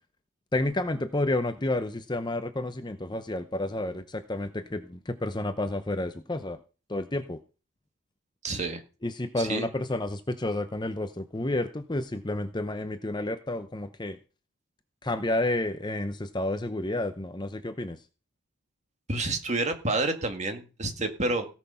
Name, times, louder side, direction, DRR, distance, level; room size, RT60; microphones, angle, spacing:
voice 1, 0.5-6.6 6.9-7.4 9.0-14.2 15.0-18.0, left 2 dB, 20° left, 10 dB, 0.7 m, -30 dB
voice 2, 8.4-8.8 9.4-9.7 19.1-21.5, right 2 dB, 30° right, 6 dB, 1.9 m, -29 dB
17.0 x 6.3 x 5.7 m, 0.33 s
head